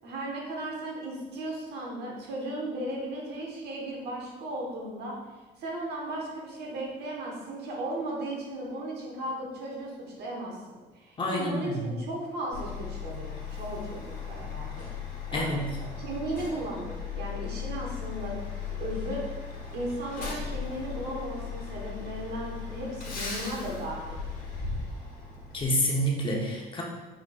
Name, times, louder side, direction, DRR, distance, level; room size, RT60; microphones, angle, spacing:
voice 1, 0.0-5.2 5.6-14.8 15.3-15.5 16.0-18.4 18.8-19.2 19.7-24.2, right 1 dB, 75° right, -2 dB, 1.3 m, -36 dB
voice 2, 11.2-11.8 15.3-15.8 25.5-26.8, equal, 30° left, -2 dB, 0.9 m, -28 dB
Truck, 12.5-25.6, left 6 dB, 50° left, 1.3 m, -37 dB
4.8 x 4.3 x 2.4 m, 1.2 s
cardioid pair, 110°, 17 cm